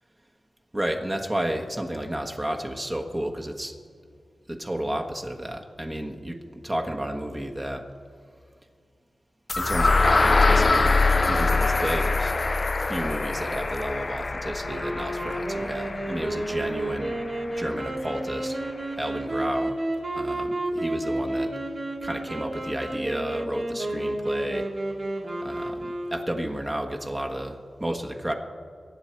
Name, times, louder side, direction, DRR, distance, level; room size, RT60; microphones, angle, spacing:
voice 1, 0.7-3.7 4.5-6.4 6.6-7.8 9.6-11.0 11.3-12.3 12.9-17.2 17.5-18.6 19.0-19.7 20.1-21.5 22.0-24.7 25.4-28.3, right 1 dB, 25° right, 2 dB, 1.3 m, -32 dB
sound 1, 9.5-17.4, left 3 dB, 45° left, 0.5 m, -24 dB
sound 2, 14.6-26.5, right 1 dB, 55° right, 2.5 m, -31 dB
23.0 x 8.9 x 4.5 m, 2.2 s
cardioid pair, 50°, 0 cm